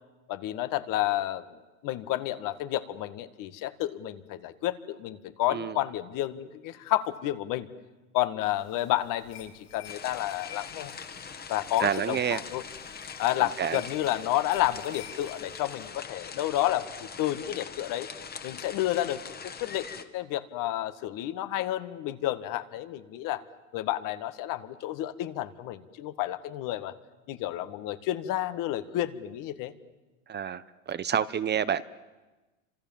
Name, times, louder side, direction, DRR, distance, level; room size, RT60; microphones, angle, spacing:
voice 1, 0.3-1.4 1.8-7.7 8.1-11.0 11.5-12.6 13.2-18.1 18.4-19.2 19.6-23.4 23.7-26.9 27.3-29.7, left 14 dB, 50° left, 12 dB, 1.9 m, -30 dB
sound 1, 8.4-15.9, left 9 dB, 85° left, 6.7 m, -50 dB
sound 2, 9.8-20.0, left 6 dB, 25° left, 2.0 m, -42 dB
voice 2, 11.8-12.4 13.6-13.8 30.3-30.6 30.9-31.8, right 8 dB, 25° right, 15 dB, 0.9 m, -28 dB
29.5 x 26.5 x 7.4 m, 1.2 s
hypercardioid pair, 105°, 41 cm